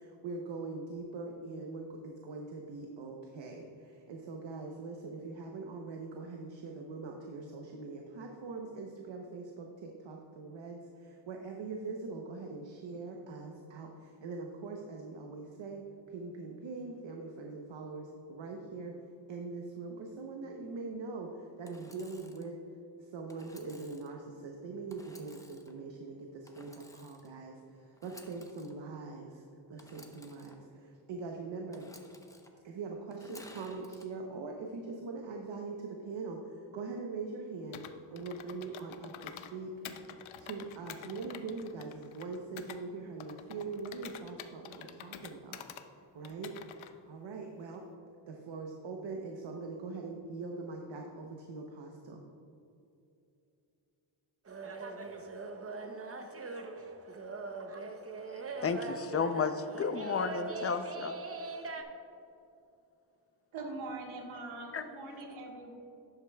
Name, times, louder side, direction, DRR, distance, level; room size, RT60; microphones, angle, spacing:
voice 1, 0.0-18.9 19.3-22.6 23.0-29.4 29.7-31.9 32.6-37.8 38.1-40.0 40.4-45.6 45.9-46.5 47.1-47.8 48.3-52.2, right 3 dB, 70° right, 1 dB, 0.9 m, -42 dB
Engine / Sawing, 21.6-22.5 23.3-24.1 24.9-25.7 26.5-27.3 27.9-28.7 29.8-30.5 31.7-32.5 33.1-34.1, left 1 dB, 5° left, 0.8 m, -55 dB
Computer keyboard, 37.7-39.5 39.8-42.8 43.2-45.8 46.2-46.9, left 9 dB, 80° left, 0.6 m, -48 dB
sound 1, 54.5-61.8, right 3 dB, 30° right, 0.8 m, -41 dB
voice 2, 58.6-61.1 64.7-64.8, left 5 dB, 30° left, 11 dB, 0.5 m, -32 dB
voice 3, 63.5-65.7, right 2 dB, 90° right, 0 dB, 1.6 m, -42 dB
11.5 x 8.1 x 2.3 m, 2.7 s
cardioid pair, 90°, 47 cm